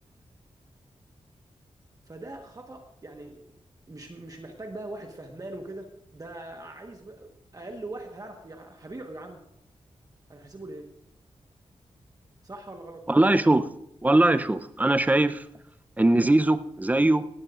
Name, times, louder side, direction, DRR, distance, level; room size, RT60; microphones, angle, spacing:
voice 1, 2.1-3.4 3.9-9.4 10.3-10.9 12.4-13.1, right 2 dB, 30° right, 3 dB, 1.3 m, -41 dB
voice 2, 13.1-13.6 14.0-15.4 16.0-17.3, right 2 dB, 15° right, 11 dB, 0.6 m, -21 dB
18.5 x 16.0 x 2.5 m, 0.81 s
wide cardioid pair, 90°, 12 cm